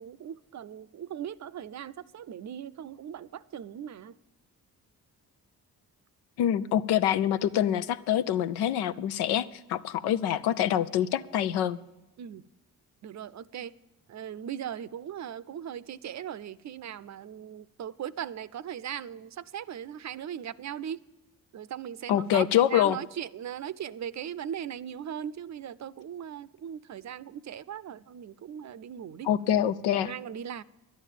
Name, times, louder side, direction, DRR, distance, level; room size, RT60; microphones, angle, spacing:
voice 1, 0.0-4.1 12.2-12.4 13.0-13.7 14.1-21.0 21.5-29.3 29.9-30.6, right 9 dB, 45° right, 0.5 m, -39 dB
voice 2, 6.4-11.8 22.1-23.0 29.2-30.1, left 11 dB, 90° left, 0.6 m, -25 dB
11.0 x 8.7 x 9.1 m
supercardioid pair, 70°, 38 cm